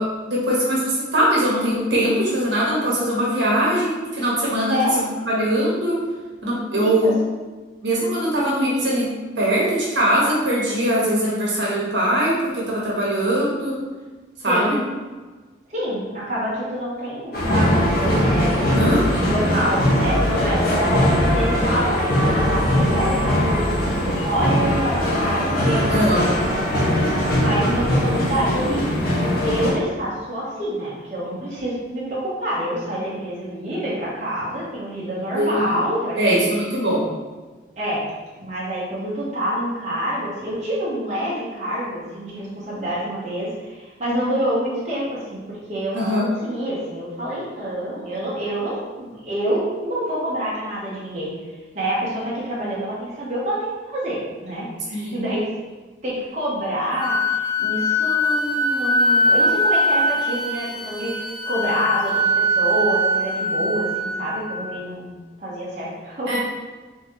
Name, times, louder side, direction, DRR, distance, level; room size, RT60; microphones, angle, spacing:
voice 1, 0.0-6.0 6.4-7.1 7.8-13.8 14.4-14.8 18.7-19.1 25.8-26.3 35.3-35.8 36.2-37.1 45.9-46.3 54.9-55.1 66.3-66.4, equal, 70° right, -5 dB, 1.2 m, -21 dB
voice 2, 6.8-7.1 14.4-14.8 15.7-28.9 29.3-36.5 37.8-38.0 38.4-51.3 51.7-55.4 56.0-65.1 65.4-66.4, equal, 40° right, -8 dB, 1.1 m, -27 dB
sound 1, 17.3-29.7, equal, 50° left, 0.9 m, -20 dB
Wind instrument woodwind instrument, 57.0-64.7, equal, 25° left, 0.3 m, -21 dB
4.1 x 3.7 x 3.1 m, 1.3 s
head